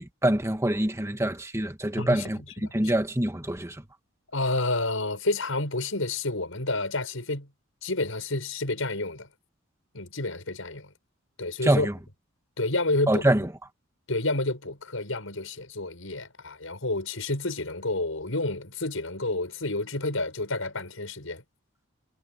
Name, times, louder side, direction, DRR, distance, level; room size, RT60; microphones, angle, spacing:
voice 1, 0.0-3.8 11.6-12.0 13.1-13.5, right 1 dB, 15° right, 2.0 m, -25 dB
voice 2, 2.0-2.3 2.6-2.7 4.3-7.5 7.8-9.3 9.9-10.9 11.4-11.9 12.6-13.2 14.1-21.4, left 2 dB, 85° left, 5.9 m, -29 dB
head